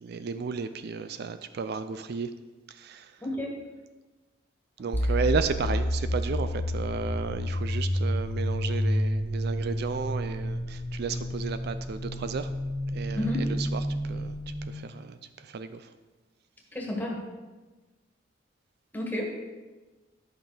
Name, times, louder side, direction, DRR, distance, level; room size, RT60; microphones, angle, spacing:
voice 1, 0.0-2.3 2.7-3.1 4.8-12.5 12.9-15.9, right 5 dB, 55° right, 11 dB, 0.4 m, -33 dB
voice 2, 3.2-3.6 13.1-13.4 16.7-17.2 18.9-19.3, left 1 dB, 10° left, -1 dB, 1.7 m, -31 dB
sound 1, 4.9-14.7, equal, 90° left, 2.1 m, -30 dB
11.0 x 5.9 x 5.0 m, 1.2 s
head